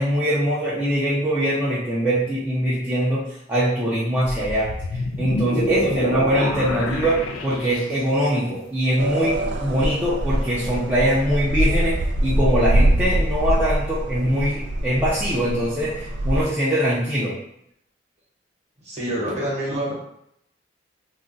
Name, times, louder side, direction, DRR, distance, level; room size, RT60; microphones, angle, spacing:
voice 1, 0.0-17.3, equal, 10° right, -10 dB, 0.5 m, -22 dB
sound 1, 4.2-8.2, left 1 dB, 90° left, 0.4 m, -28 dB
sound 2, 9.0-16.4, right 1 dB, 65° right, 0.4 m, -23 dB
voice 2, 18.8-19.9, right 1 dB, 35° right, -5 dB, 0.9 m, -26 dB
2.4 x 2.1 x 3.8 m, 0.75 s
head